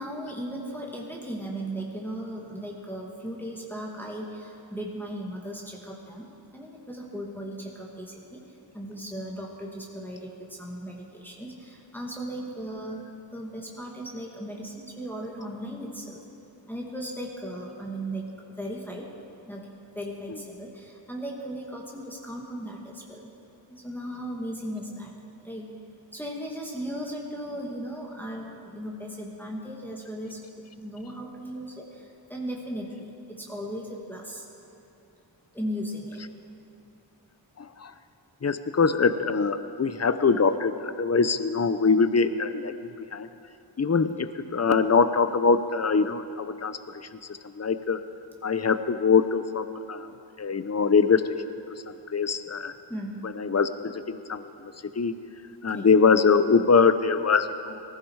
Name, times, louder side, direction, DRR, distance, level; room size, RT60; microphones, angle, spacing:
voice 1, 0.0-6.3 6.5-8.4 8.7-16.2 16.7-18.3 18.6-19.1 19.5-23.3 23.7-25.1 25.4-25.7 26.1-30.4 30.7-33.1 33.4-34.4 35.5-36.2 52.9-53.2 55.7-55.9, equal, 5° left, -2 dB, 2.3 m, -37 dB
voice 2, 37.6-37.9 38.4-43.3 43.8-48.0 48.4-50.1 50.4-51.2 52.1-52.7 53.2-55.1 55.6-57.8, left 5 dB, 35° left, 12 dB, 0.8 m, -23 dB
19.5 x 15.0 x 4.8 m, 2.8 s
wide cardioid pair, 50°, 45 cm